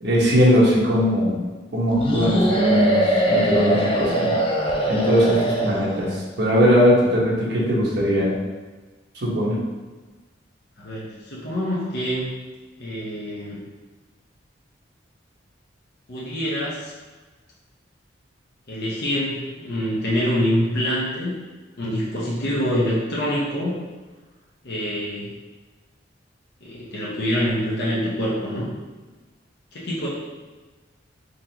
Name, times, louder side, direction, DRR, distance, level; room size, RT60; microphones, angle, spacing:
voice 1, 0.0-1.4 1.7-4.3 4.9-6.1 6.4-8.3 9.2-9.6, equal, 60° right, -5 dB, 1.1 m, -19 dB
sound 1, 2.0-6.2, right 1 dB, 30° left, 0.5 m, -22 dB
voice 2, 10.8-12.3 12.8-13.6 16.1-16.9 18.7-21.3 21.8-23.7 24.6-25.3 26.6-28.7 29.7-30.1, equal, 60° left, -7 dB, 0.9 m, -25 dB
3.9 x 3.1 x 2.9 m, 1.3 s
head